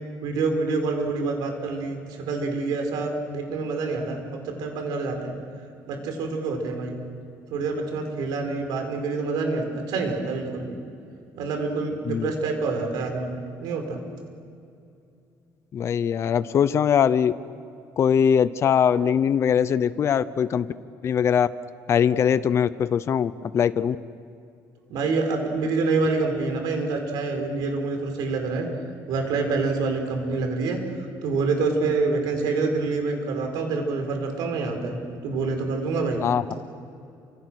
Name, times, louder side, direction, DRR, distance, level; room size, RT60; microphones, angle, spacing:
voice 1, 0.2-5.4 5.9-7.0 7.5-10.8 11.4-13.3 13.6-14.0 24.9-28.7 29.1-36.2, right 3 dB, 80° right, 4 dB, 5.1 m, -27 dB
voice 2, 15.7-17.3 18.0-20.7 21.0-21.5 21.9-24.0 36.2-36.5, left 8 dB, 40° left, 14 dB, 0.8 m, -21 dB
29.0 x 26.5 x 6.5 m, 2.5 s
cardioid pair, 145°, 7 cm